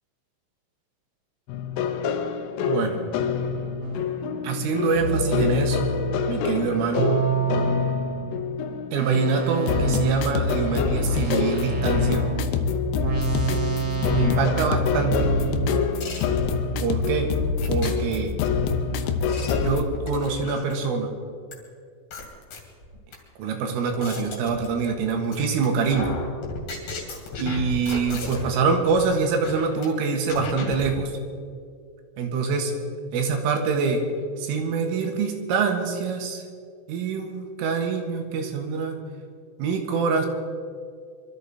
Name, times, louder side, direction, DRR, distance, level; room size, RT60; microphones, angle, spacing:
sound 1, 1.5-19.8, left 6 dB, 80° left, 3.4 m, -26 dB
voice 1, 2.6-3.0 4.4-5.9 6.3-7.1 8.9-12.2 14.1-15.4 16.8-17.3 17.7-18.3 19.6-21.1 23.4-26.1 27.4-31.1 32.2-32.7 33.1-34.0 34.4-36.4 36.9-39.0 39.6-40.3, right 5 dB, 85° right, 3 dB, 4.2 m, -25 dB
sound 2, 3.8-4.1 4.9-8.3 9.0-15.8, right 4 dB, 30° right, 3.1 m, -28 dB
sound 3, 16.0-16.8 17.6-18.5 19.0-20.9 21.5-21.6 22.1-23.1 23.6-25.0 25.3-25.7 25.9-28.6 28.9-29.0 29.4-29.9 30.3-30.9, left 3 dB, 50° left, 3.8 m, -34 dB
24.0 x 13.5 x 4.2 m, 2.2 s
omnidirectional pair, 5.7 m